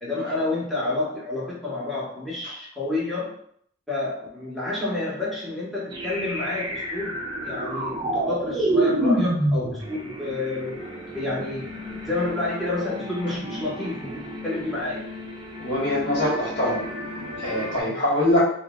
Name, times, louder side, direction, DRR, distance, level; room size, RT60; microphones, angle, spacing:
voice 1, 0.0-3.4 3.9-10.8 11.1-11.7 12.0-15.1 17.7-18.0, left 2 dB, ahead, -6 dB, 0.9 m, -29 dB
sound 1, 5.9-17.8, right 1 dB, 25° right, 0.6 m, -29 dB
voice 2, 15.6-16.8 17.4-18.4, left 1 dB, 45° left, -6 dB, 1.1 m, -23 dB
2.8 x 2.0 x 3.5 m, 0.62 s
head